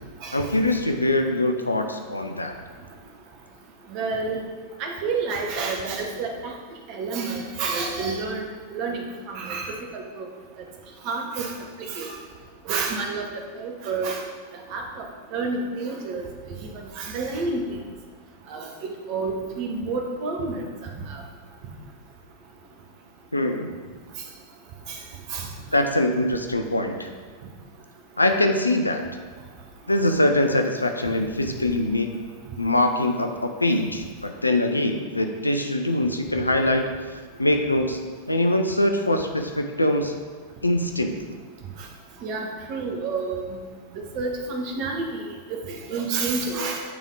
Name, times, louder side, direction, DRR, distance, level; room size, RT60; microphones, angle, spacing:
voice 1, 0.3-2.5 23.3-23.7 25.7-27.1 28.2-29.0 29.9-32.1 32.6-36.9 37.4-38.0 38.3-40.1 40.6-41.1, left 1 dB, 85° left, 5 dB, 0.4 m, -23 dB
voice 2, 3.9-4.4 4.8-6.5 6.9-8.4 8.7-10.3 11.1-11.5 11.9-12.1 12.7-14.2 14.7-14.8 15.3-16.2 17.0-17.6 18.5-18.7 19.1-20.6 21.1-21.2 24.9-25.0 25.3-25.5 42.2-43.4 43.9-45.1 45.7-46.8, right 4 dB, 45° right, 2 dB, 1.0 m, -29 dB
8.9 x 3.5 x 3.8 m, 1.5 s
figure-of-eight pair, 90°, 0 cm